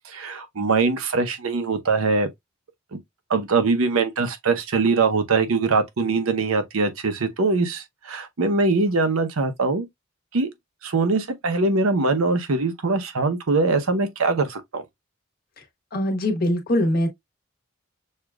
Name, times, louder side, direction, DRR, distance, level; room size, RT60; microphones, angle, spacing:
voice 1, 0.1-2.3 2.9-3.0 3.3-9.9 10.3-10.5 10.8-14.8, right 3 dB, 90° right, 0.8 m, -22 dB
voice 2, 15.9-17.1, left 1 dB, 45° left, 1.2 m, -22 dB
6.5 x 2.4 x 2.3 m
head